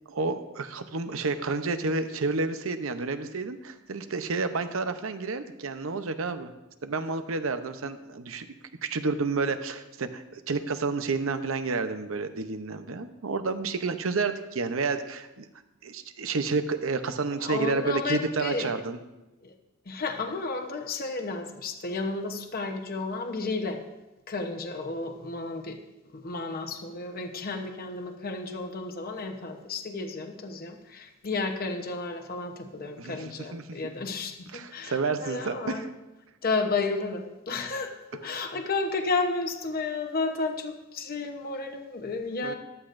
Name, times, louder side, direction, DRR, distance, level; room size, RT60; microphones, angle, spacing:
voice 1, 0.1-6.5 6.8-15.5 15.8-19.0 33.0-33.6 34.5-35.9 42.4-42.5, right 4 dB, 75° right, 9 dB, 0.7 m, -30 dB
voice 2, 17.4-18.7 19.4-19.5 19.9-23.8 24.3-25.8 26.1-35.9 36.4-42.5, left 3 dB, 45° left, 5 dB, 0.9 m, -32 dB
14.5 x 11.5 x 2.6 m, 1.0 s
head